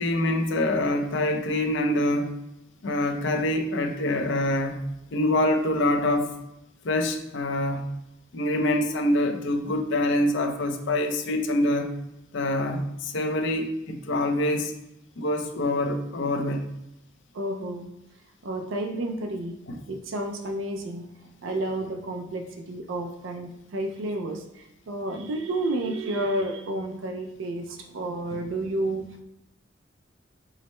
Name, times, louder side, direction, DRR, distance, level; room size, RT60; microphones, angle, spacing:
voice 1, 0.0-2.3 2.8-4.8 5.1-6.3 6.8-7.8 8.3-11.9 12.3-14.7 15.2-16.6 19.7-19.8, left 1 dB, 70° left, 4 dB, 0.5 m, -25 dB
voice 2, 17.3-17.9 18.4-19.5 19.9-21.1 21.4-29.2, right 1 dB, 75° right, 4 dB, 0.5 m, -31 dB
4.6 x 2.1 x 4.2 m, 0.90 s
head